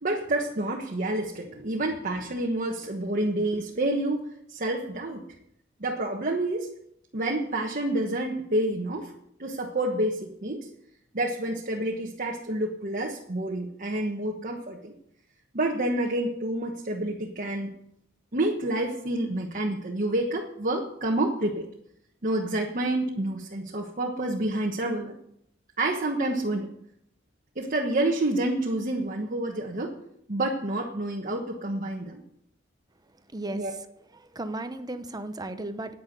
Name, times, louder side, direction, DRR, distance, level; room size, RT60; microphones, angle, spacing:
voice 1, 0.0-5.2 5.8-6.7 7.1-9.1 9.4-10.7 11.1-14.9 15.5-17.7 18.3-21.6 22.2-25.1 25.8-26.7 27.5-30.0 30.3-32.2 33.5-33.7, right 1 dB, 45° right, 0 dB, 1.3 m, -28 dB
voice 2, 33.3-33.6 34.3-35.9, right 2 dB, 20° right, 10 dB, 0.8 m, -34 dB
10.0 x 9.6 x 6.7 m, 0.73 s
head